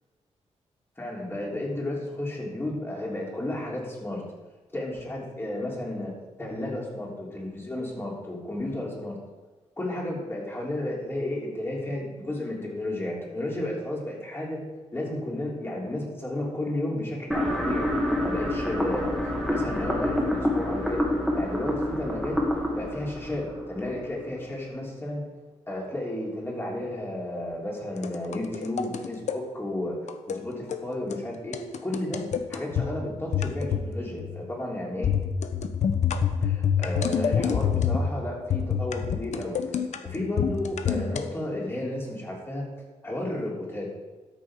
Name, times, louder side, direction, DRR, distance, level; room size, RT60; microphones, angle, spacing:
voice 1, 1.0-4.2 4.7-6.1 6.4-9.2 9.8-14.6 14.9-17.9 18.2-19.1 19.5-21.1 21.3-22.4 22.7-25.2 25.7-30.0 30.3-35.1 36.4-39.6 40.0-42.6 43.0-43.9, left 1 dB, 20° left, -3 dB, 3.2 m, -32 dB
sound 1, 17.3-24.3, left 1 dB, ahead, 2.0 m, -28 dB
sound 2, 28.0-29.4 30.1-30.4 30.7-30.9 31.1-31.2 31.5-32.9 33.3-33.9 34.2-34.5 35.0-38.1 38.5-41.2, left 7 dB, 75° left, 0.8 m, -27 dB
12.0 x 6.7 x 4.9 m, 1.2 s
cardioid pair, 105°, 12 cm